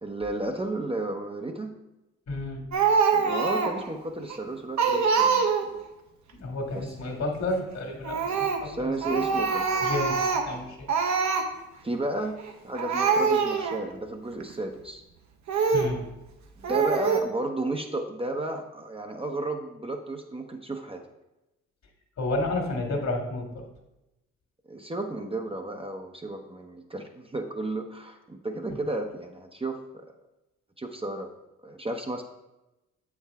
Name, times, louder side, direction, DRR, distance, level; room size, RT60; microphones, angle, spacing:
voice 1, 0.0-1.8 3.1-5.8 6.7-6.9 8.3-9.9 11.8-12.4 12.6-15.0 16.6-21.0 24.7-30.0 30.8-31.3 31.6-32.2, right 2 dB, 15° right, 3 dB, 0.8 m, -33 dB
voice 2, 2.3-2.6 6.3-9.3 9.8-10.9 15.7-16.1 22.2-23.6 28.7-28.8, left 2 dB, 50° left, 1 dB, 1.8 m, -31 dB
Speech, 2.7-3.9 4.3-4.4 4.8-5.8 8.0-8.7 9.0-10.6 10.9-11.5 12.4-12.5 12.8-13.8 14.4-14.5 15.5-16.0 16.6-17.2, right 5 dB, 55° right, 1.0 m, -24 dB
7.8 x 4.8 x 3.5 m, 0.95 s
hypercardioid pair, 50°, 34 cm